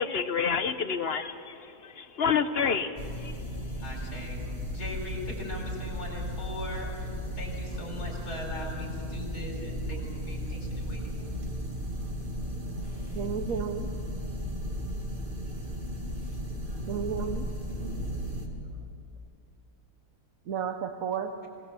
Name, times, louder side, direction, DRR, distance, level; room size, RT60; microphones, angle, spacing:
voice 1, 0.0-3.4, left 6 dB, 50° left, 11 dB, 0.9 m, -29 dB
sound 1, 3.0-18.5, equal, 35° right, 2.5 m, -35 dB
voice 2, 3.8-11.1, left 1 dB, 90° left, 1 dB, 5.0 m, -40 dB
voice 3, 13.1-13.9 16.9-17.5 20.4-21.3, right 7 dB, 65° right, 6 dB, 1.3 m, -32 dB
27.0 x 18.5 x 7.1 m, 2.5 s
omnidirectional pair, 1.6 m